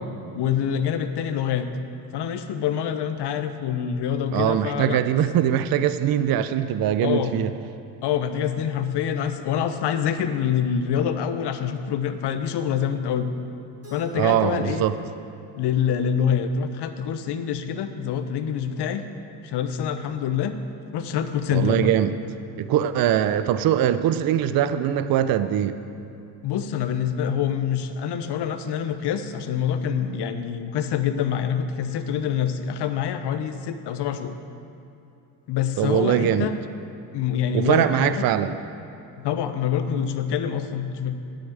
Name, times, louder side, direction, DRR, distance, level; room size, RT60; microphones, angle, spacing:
voice 1, 0.3-1.7 2.1-5.0 7.0-7.4 8.0-13.3 13.9-14.8 15.5-19.0 19.4-20.5 20.9-21.9 26.4-34.3 35.5-36.5 37.1-38.2 39.2-41.1, left 8 dB, 55° left, 9 dB, 1.0 m, -26 dB
voice 2, 4.3-7.5 14.2-14.9 21.5-22.1 22.6-25.8 35.8-36.5 37.5-38.6, right 10 dB, 50° right, 12 dB, 0.6 m, -22 dB
Keyboard (musical), 13.8-16.8, right 4 dB, 30° right, 3.0 m, -50 dB
9.9 x 6.9 x 7.9 m, 2.8 s
supercardioid pair, 75°, 47 cm